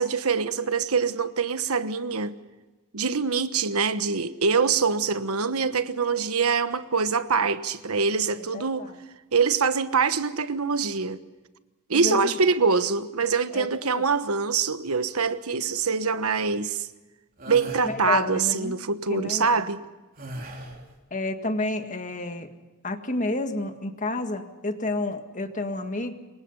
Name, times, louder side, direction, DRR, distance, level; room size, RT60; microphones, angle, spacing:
voice 1, 0.0-2.3 2.9-8.9 9.3-11.2 11.9-16.9 17.5-19.8, right 5 dB, 85° right, 1.2 m, -24 dB
voice 2, 8.3-9.0 11.9-12.4 13.5-14.1 17.8-18.8 19.1-19.8 21.1-22.5 22.8-26.1, left 2 dB, 35° left, 1.8 m, -31 dB
sound 1, 17.4-17.9 20.2-20.9, right 1 dB, 40° right, 3.9 m, -37 dB
27.5 x 23.5 x 5.6 m
head